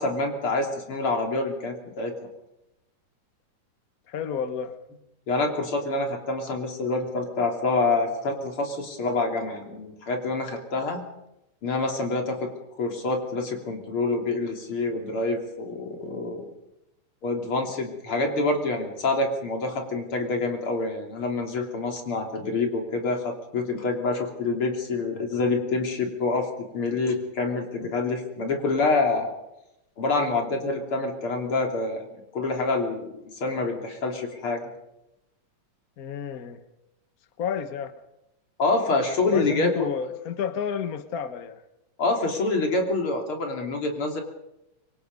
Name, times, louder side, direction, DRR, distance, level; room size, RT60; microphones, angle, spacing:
voice 1, 0.0-2.1 5.3-11.0 11.6-12.5 12.8-16.5 17.2-26.5 26.7-29.3 30.0-34.6 38.6-39.7 42.0-44.2, left 3 dB, 45° left, 2 dB, 3.8 m, -27 dB
voice 2, 4.1-4.8 36.0-36.6 37.4-37.9 39.3-41.6, left 7 dB, 80° left, 9 dB, 0.7 m, -31 dB
25.5 x 24.5 x 5.4 m, 0.89 s
omnidirectional pair, 3.5 m